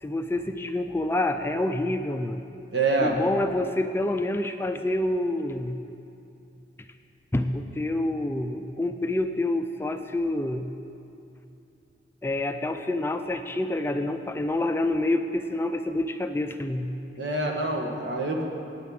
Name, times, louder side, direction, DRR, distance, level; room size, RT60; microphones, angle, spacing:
voice 1, 0.0-2.4 3.0-5.8 7.3-10.7 12.2-16.9, left 1 dB, 15° left, 7 dB, 0.4 m, -27 dB
voice 2, 2.7-3.2 17.2-18.4, right 3 dB, 75° right, 1 dB, 1.4 m, -26 dB
9.3 x 9.1 x 7.7 m, 2.7 s
head